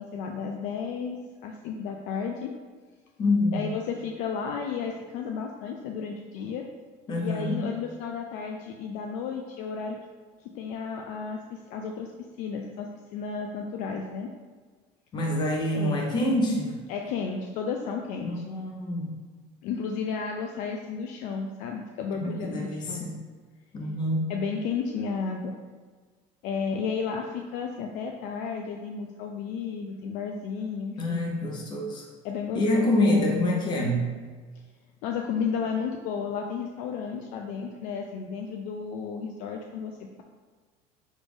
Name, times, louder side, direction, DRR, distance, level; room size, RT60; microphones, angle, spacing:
voice 1, 0.0-2.5 3.5-6.6 7.2-10.0 10.4-14.3 15.7-16.0 16.9-18.3 19.6-23.1 24.3-25.5 26.4-31.2 32.2-33.7 35.0-40.2, left 6 dB, 60° left, 2 dB, 0.4 m, -33 dB
voice 2, 3.2-3.6 7.1-7.6 15.1-16.8 18.2-19.1 22.2-23.1 23.7-24.3 31.0-32.1 32.5-34.2, left 1 dB, 30° left, 0 dB, 0.8 m, -26 dB
5.1 x 2.5 x 3.5 m, 1.4 s
cardioid pair, 155°, 15 cm